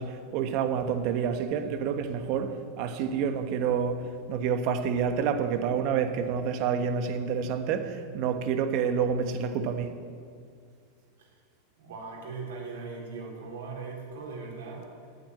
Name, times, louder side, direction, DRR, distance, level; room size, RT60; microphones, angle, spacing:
voice 1, 0.0-9.9, right 7 dB, 55° right, 7 dB, 1.3 m, -28 dB
voice 2, 11.8-14.9, right 4 dB, 80° right, -2 dB, 3.8 m, -39 dB
9.6 x 8.8 x 8.6 m, 2.2 s
hypercardioid pair, 105°, 0 cm